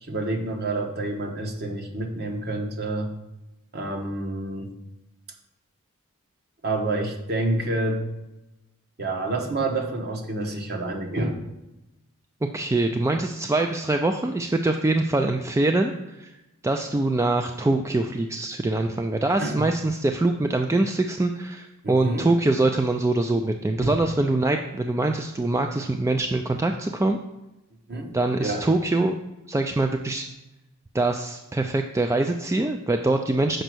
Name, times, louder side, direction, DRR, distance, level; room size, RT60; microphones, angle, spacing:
voice 1, 0.0-3.1 3.7-4.7 6.6-8.0 9.0-11.4 19.4-19.6 21.8-22.3 23.8-23.9 27.9-28.1 28.4-28.6, right 2 dB, 50° right, 3 dB, 1.2 m, -28 dB
voice 2, 12.5-16.3 16.6-27.2 28.1-29.2 29.5-30.3 30.9-33.6, right 2 dB, 15° right, 5 dB, 0.3 m, -24 dB
6.6 x 5.1 x 6.1 m, 0.97 s
head